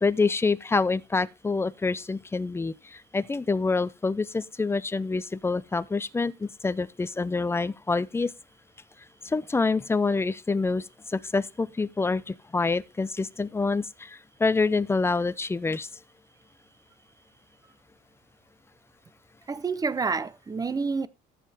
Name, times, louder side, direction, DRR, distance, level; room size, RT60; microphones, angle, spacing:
voice 1, 0.0-8.3 9.2-15.9, left 3 dB, 15° left, 0.5 m, -27 dB
voice 2, 19.5-21.1, right 4 dB, 20° right, 0.7 m, -28 dB
14.0 x 7.5 x 3.5 m
cardioid pair, 110°, 17 cm